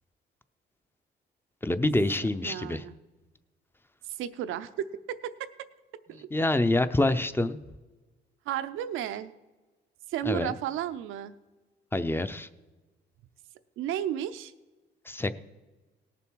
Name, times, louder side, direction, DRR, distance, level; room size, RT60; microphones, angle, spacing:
voice 1, 1.6-2.8 6.1-7.6 10.2-10.5 11.9-12.5 15.1-15.3, left 2 dB, 10° left, 12 dB, 0.6 m, -26 dB
voice 2, 2.4-2.9 4.1-4.7 5.1-5.7 6.1-6.3 8.5-9.3 10.1-11.3 13.8-14.5, right 11 dB, 85° right, 12 dB, 0.6 m, -33 dB
18.0 x 7.0 x 4.6 m, 1.2 s
cardioid pair, 90°, 20 cm